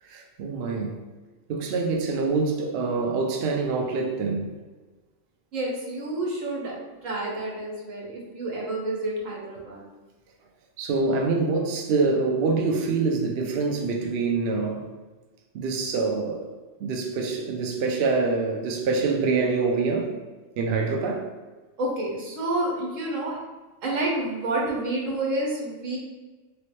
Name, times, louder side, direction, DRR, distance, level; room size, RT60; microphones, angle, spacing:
voice 1, 0.1-1.0 1.5-4.5 10.8-14.9 15.5-16.5 16.8-20.1 20.6-21.3, right 4 dB, 65° right, 1 dB, 0.7 m, -25 dB
voice 2, 5.5-6.7 7.0-9.8 21.8-23.4 23.8-26.0, right 2 dB, 85° right, -3 dB, 1.3 m, -29 dB
3.1 x 2.9 x 3.1 m, 1.2 s
omnidirectional pair, 1.3 m